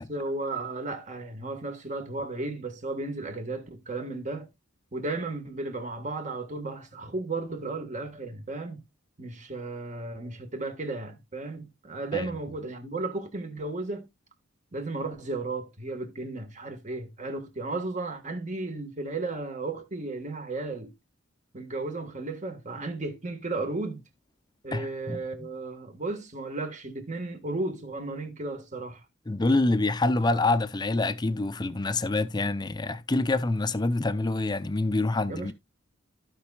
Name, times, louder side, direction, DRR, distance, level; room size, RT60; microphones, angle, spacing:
voice 1, 0.1-4.5 4.9-8.8 9.2-14.1 14.7-20.9 21.5-24.0 24.6-29.0 35.3-35.5, right 2 dB, 35° right, 1.6 m, -34 dB
voice 2, 24.7-25.5 29.3-35.5, left 2 dB, 20° left, 0.5 m, -26 dB
15.0 x 5.4 x 2.3 m
head